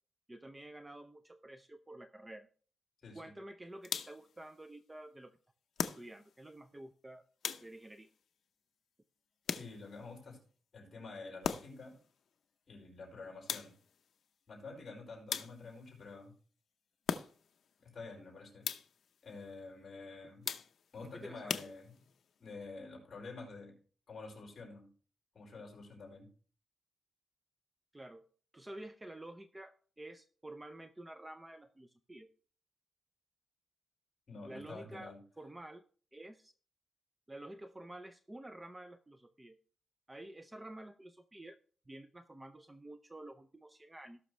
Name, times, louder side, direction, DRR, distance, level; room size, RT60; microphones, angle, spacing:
voice 1, 0.3-2.5 3.1-5.4 5.8-7.2 7.6-8.1 21.2-21.6 27.9-28.3 28.5-32.3 34.4-35.8 36.1-36.5 37.3-39.6 40.1-41.5 41.9-44.2, right 1 dB, 10° right, 9 dB, 0.5 m, -50 dB
voice 2, 3.0-3.3 9.5-10.4 10.7-12.0 12.7-13.7 14.5-16.3 17.8-18.7 19.2-20.5 20.9-22.0 22.4-23.8 24.1-24.9 25.3-26.3 34.3-35.2, left 3 dB, 35° left, -2 dB, 5.1 m, -48 dB
sound 1, 3.8-4.4 5.8-6.4 7.4-8.0 9.5-10.1 11.4-11.9 13.5-14.0 15.3-15.9 17.1-17.6 18.6-19.1 20.5-21.0 21.5-22.2, left 7 dB, 65° left, 0.7 m, -39 dB
18.0 x 6.2 x 3.3 m, 0.42 s
wide cardioid pair, 155°, 0 cm